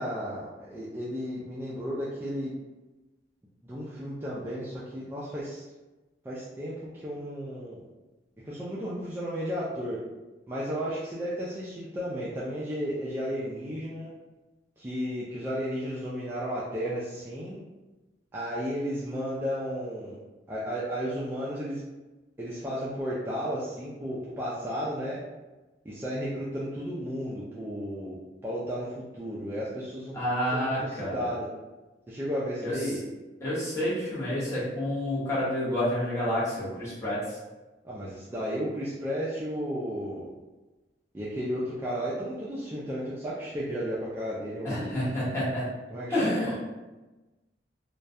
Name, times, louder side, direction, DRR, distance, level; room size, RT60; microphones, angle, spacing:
voice 1, 0.0-2.5 3.6-5.7 6.2-7.8 8.4-10.0 10.5-14.1 14.8-17.6 18.3-20.2 20.5-21.8 22.4-25.2 25.8-30.1 30.5-31.5 32.1-33.0 37.8-40.3 41.1-45.0 45.9-46.5, equal, 15° right, -8 dB, 0.3 m, -33 dB
voice 2, 30.1-31.3 32.6-32.7 33.4-37.4 44.6-45.7 46.1-46.6, left 1 dB, 15° left, -9 dB, 0.9 m, -29 dB
2.3 x 2.1 x 2.6 m, 1.1 s
head